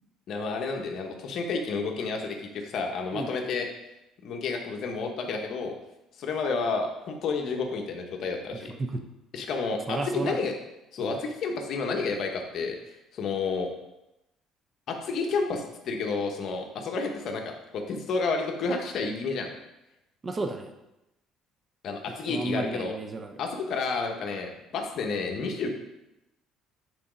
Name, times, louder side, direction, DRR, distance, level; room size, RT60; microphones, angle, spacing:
voice 1, 0.3-3.7 4.2-5.8 6.2-8.7 9.3-10.5 10.9-13.7 14.9-19.5 21.8-22.9 23.4-25.7, left 4 dB, 50° left, 2 dB, 1.0 m, -30 dB
voice 2, 8.6-9.0 9.9-10.4 11.0-11.2 20.2-20.7 22.3-23.4, right 2 dB, 20° right, 5 dB, 0.6 m, -33 dB
8.4 x 4.0 x 5.1 m, 0.93 s
cardioid pair, 140°, 0 cm